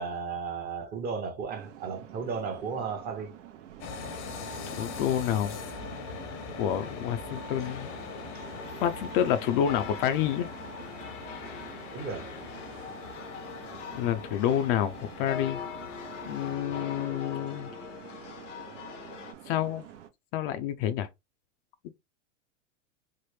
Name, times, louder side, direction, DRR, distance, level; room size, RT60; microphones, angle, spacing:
voice 1, 0.0-3.3 8.3-8.5 11.9-12.4, right 5 dB, 25° right, 0.8 m, -35 dB
sound 1, 1.5-20.1, right 10 dB, 75° right, 0.7 m, -48 dB
sound 2, 3.8-16.6, left 4 dB, 65° left, 0.8 m, -42 dB
voice 2, 4.7-5.6 6.6-7.9 8.8-10.5 13.9-15.6 16.3-17.7 19.5-19.8 20.3-21.1, left 10 dB, 45° left, 0.4 m, -28 dB
sound 3, 7.6-19.3, left 7 dB, 90° left, 0.9 m, -42 dB
3.3 x 2.0 x 3.1 m
hypercardioid pair, 120°, 36 cm